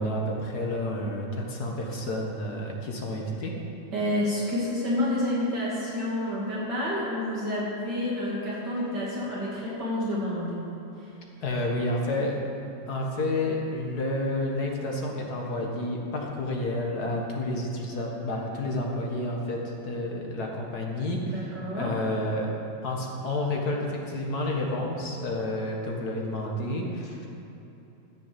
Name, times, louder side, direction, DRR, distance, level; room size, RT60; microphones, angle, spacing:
voice 1, 0.0-3.5 11.4-12.4 12.9-22.5 22.8-27.3, left 1 dB, 55° left, 0 dB, 2.0 m, -30 dB
voice 2, 3.9-10.6 11.0-11.1 21.3-21.9, left 1 dB, 60° right, -7 dB, 2.7 m, -29 dB
14.0 x 6.5 x 7.5 m, 3.0 s
omnidirectional pair, 2.1 m